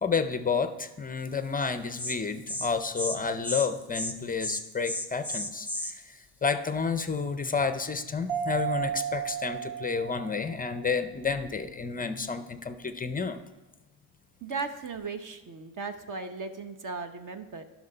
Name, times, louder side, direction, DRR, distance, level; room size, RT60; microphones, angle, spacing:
voice 1, 0.0-13.4, left 5 dB, 20° left, 10 dB, 0.5 m, -30 dB
Insect, 1.6-1.7 2.0-2.2 2.5-2.7 3.0-3.2 3.4-3.7 3.9-4.1 4.4-5.9, left 1 dB, 5° right, 1.0 m, -33 dB
Mallet percussion, 8.3-10.8, right 8 dB, 75° right, 1.6 m, -33 dB
voice 2, 14.4-17.6, right 4 dB, 40° right, 8 dB, 0.9 m, -37 dB
11.0 x 6.1 x 4.3 m, 1.1 s
supercardioid pair, 90°, 48 cm